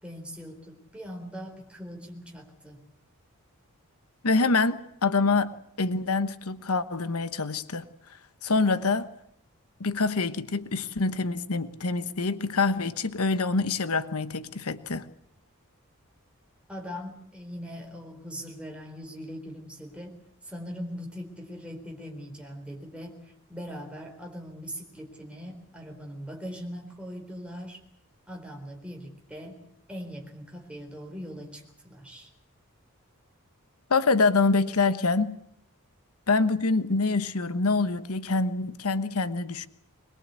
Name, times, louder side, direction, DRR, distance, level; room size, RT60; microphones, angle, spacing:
voice 1, 0.0-2.9 16.7-20.2 20.4-27.8 28.3-29.6 29.9-32.3, equal, 5° right, 1 dB, 4.1 m, -41 dB
voice 2, 4.2-5.5 5.8-7.8 8.4-9.1 9.8-15.1 33.9-35.4 36.3-39.7, left 3 dB, 80° left, 12 dB, 1.2 m, -25 dB
22.5 x 21.5 x 8.3 m, 0.73 s
head